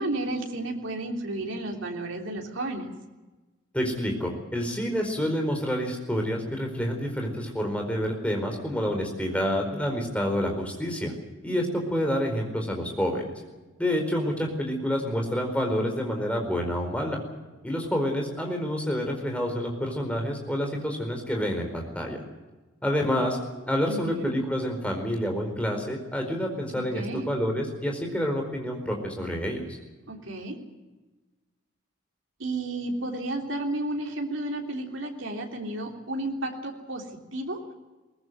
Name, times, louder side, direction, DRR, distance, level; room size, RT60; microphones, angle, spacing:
voice 1, 0.0-2.9 23.9-24.3 26.7-27.3 30.1-30.6 32.4-37.6, right 2 dB, 75° right, 2 dB, 3.4 m, -32 dB
voice 2, 3.7-11.1 11.4-13.2 13.8-17.2 17.6-22.2 22.8-23.4 23.7-29.6, equal, 5° left, 2 dB, 4.6 m, -28 dB
22.0 x 19.0 x 8.0 m, 1.2 s
head